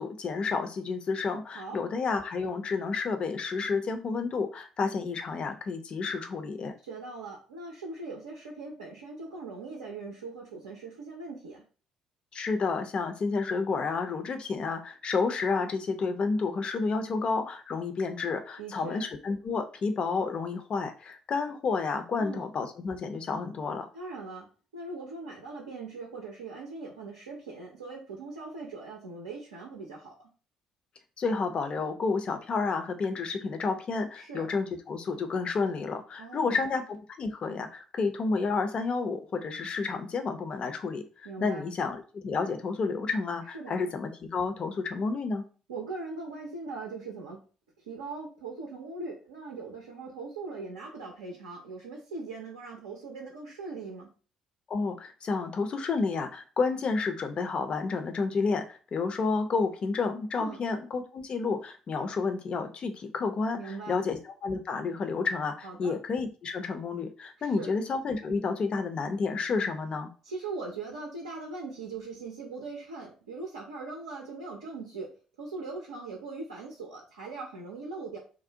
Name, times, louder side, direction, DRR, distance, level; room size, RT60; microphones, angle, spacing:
voice 1, 0.0-6.7 12.3-23.9 31.2-45.4 54.7-70.1, left 4 dB, 40° left, 7 dB, 0.4 m, -30 dB
voice 2, 6.8-11.6 18.6-19.0 22.2-22.5 23.9-24.5 24.7-30.1 34.2-34.5 36.2-36.7 41.2-41.7 43.5-43.8 45.7-47.4 47.8-54.1 60.3-60.6 63.5-64.0 65.6-65.9 67.4-67.7 70.2-75.1 75.4-78.2, right 3 dB, 80° right, -2 dB, 0.5 m, -40 dB
2.5 x 2.0 x 2.7 m, 0.37 s
figure-of-eight pair, 50°, 3 cm